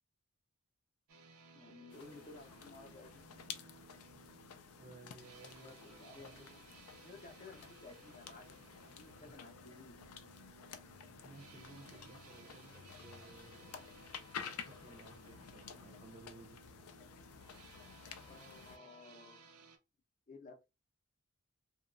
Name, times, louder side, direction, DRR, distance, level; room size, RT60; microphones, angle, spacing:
sound 1, 1.1-19.8, right 4 dB, 85° right, 0.5 m, -60 dB
voice 1, 1.5-3.5 5.6-6.6 7.0-10.0 18.2-19.7 20.3-20.7, left 3 dB, 35° left, 0.5 m, -56 dB
sound 2, 1.9-18.8, left 7 dB, 85° left, 0.4 m, -52 dB
voice 2, 4.8-6.4 9.2-9.4 11.2-13.8 14.4-16.6, right 3 dB, 35° right, 0.4 m, -58 dB
2.9 x 2.2 x 2.4 m
head